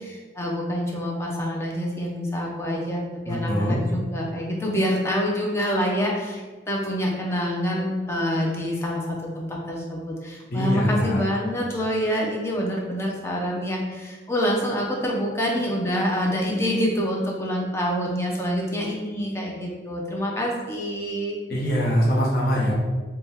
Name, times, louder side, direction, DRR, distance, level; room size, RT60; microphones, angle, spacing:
voice 1, 0.0-6.4 6.7-21.4, equal, 15° left, -2 dB, 0.5 m, -26 dB
voice 2, 3.3-3.8 10.5-11.2 21.5-22.7, equal, 55° left, -5 dB, 0.7 m, -23 dB
3.4 x 2.3 x 4.1 m, 1.4 s
head